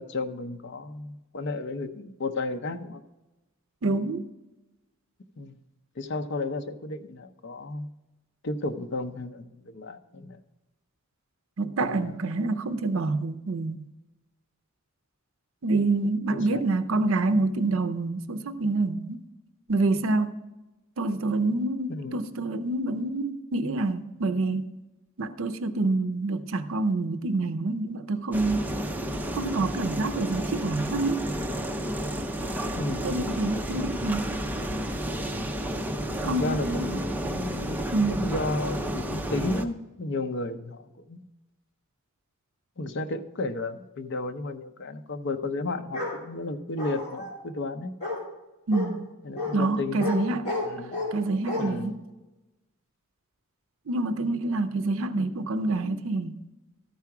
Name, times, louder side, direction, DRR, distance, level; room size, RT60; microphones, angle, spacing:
voice 1, 0.0-3.0 5.4-5.6 6.0-7.9 8.4-10.4 11.8-12.1 16.3-16.7 21.9-22.2 32.8-33.4 36.2-37.8 38.1-41.3 42.8-48.0 49.2-50.3 50.7-51.0 51.4-52.0, left 2 dB, 55° left, 0.6 m, -33 dB
voice 2, 3.8-4.3 11.6-13.8 15.6-19.2 19.7-20.4 21.0-24.7 25.2-28.7 29.3-31.3 33.0-34.3 36.2-37.0 37.9-38.2 48.7-49.1 49.5-50.5 51.1-52.0 53.9-56.4, right 2 dB, 65° right, 0.5 m, -27 dB
sound 1, 28.3-39.7, equal, 10° right, 0.6 m, -31 dB
Bark, 45.9-46.2 46.8-47.3 48.0-48.2 48.7-48.9 49.4-49.5 50.0-50.2 50.4-51.1 51.5-51.6, left 2 dB, 35° left, 3.1 m, -31 dB
13.0 x 4.7 x 5.9 m
head